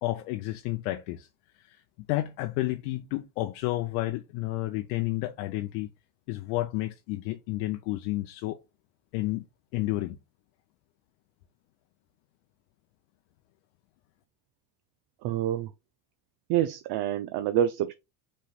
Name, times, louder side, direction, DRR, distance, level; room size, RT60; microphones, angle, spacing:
voice 1, 0.0-1.3 1.6-1.8 2.1-5.9 6.3-8.6 9.1-9.5 9.7-10.2, left 17 dB, 75° left, 0.6 m, -31 dB
voice 2, 15.2-15.7 16.5-17.9, right 11 dB, 55° right, 0.6 m, -27 dB
6.0 x 3.2 x 2.3 m
supercardioid pair, 95°, 49 cm